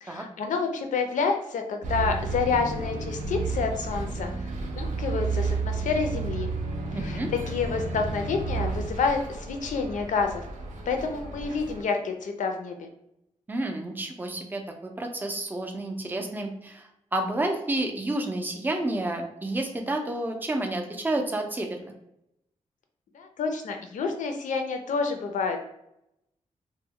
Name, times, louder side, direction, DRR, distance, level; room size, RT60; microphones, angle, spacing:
voice 1, 0.0-6.5 6.9-7.2 7.5-10.4 10.9-12.9 23.1-25.6, left 5 dB, 90° left, 4 dB, 0.4 m, -29 dB
Bus, 1.8-11.8, right 4 dB, 80° right, 0.5 m, -32 dB
voice 2, 6.9-7.3 13.5-21.9, right 1 dB, 15° right, 3 dB, 0.3 m, -30 dB
2.1 x 2.1 x 3.6 m, 0.82 s
wide cardioid pair, 170°, 13 cm